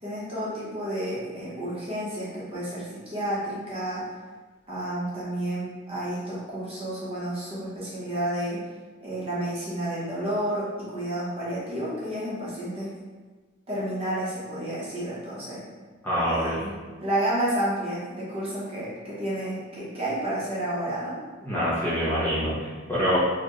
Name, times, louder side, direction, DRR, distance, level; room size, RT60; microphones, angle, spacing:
voice 1, 0.0-4.1 4.7-8.6 9.0-12.9 13.7-15.6 16.1-16.7 17.0-21.2, right 1 dB, 30° right, -8 dB, 1.0 m, -31 dB
voice 2, 16.0-16.6 21.4-23.2, equal, 10° left, -10 dB, 0.9 m, -25 dB
4.4 x 2.4 x 3.1 m, 1.3 s
head